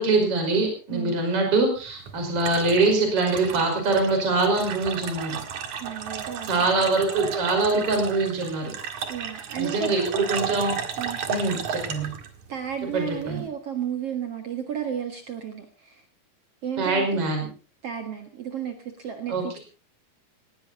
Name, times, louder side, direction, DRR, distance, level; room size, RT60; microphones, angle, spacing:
voice 1, 0.0-5.4 6.5-8.7 9.6-10.8 11.3-12.1 12.9-13.4 16.8-17.5 19.3-19.6, right 3 dB, 30° right, 3 dB, 5.9 m, -24 dB
sound 1, 1.8-13.5, right 7 dB, 55° right, 2.5 m, -34 dB
voice 2, 5.8-6.5 9.1-10.2 11.0-11.2 12.5-16.0 16.6-17.2 17.8-19.6, right 9 dB, 75° right, 6 dB, 1.3 m, -33 dB
19.0 x 18.5 x 4.2 m, 0.36 s
omnidirectional pair, 5.3 m